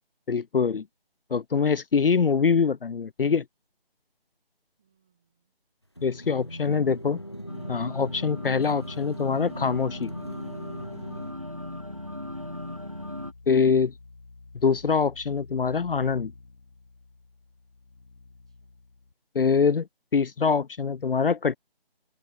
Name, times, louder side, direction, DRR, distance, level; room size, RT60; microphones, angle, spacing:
voice 1, 0.3-0.9 1.3-3.4 6.0-7.2 7.7-10.1 13.5-13.9 14.6-16.3 19.3-19.9 20.1-21.6, left 5 dB, 65° left, 0.5 m, -24 dB
voice 2, 4.8-5.5 6.4-7.2 13.2-13.9 18.5-18.8, right 8 dB, 5° right, 1.7 m, -70 dB
sound 1, 6.0-11.3, equal, 25° left, 0.7 m, -39 dB
sound 2, 7.5-13.3, left 1 dB, 35° right, 0.4 m, -39 dB
sound 3, 9.2-19.1, left 3 dB, 45° left, 1.7 m, -51 dB
open air
figure-of-eight pair, 175°, 30 cm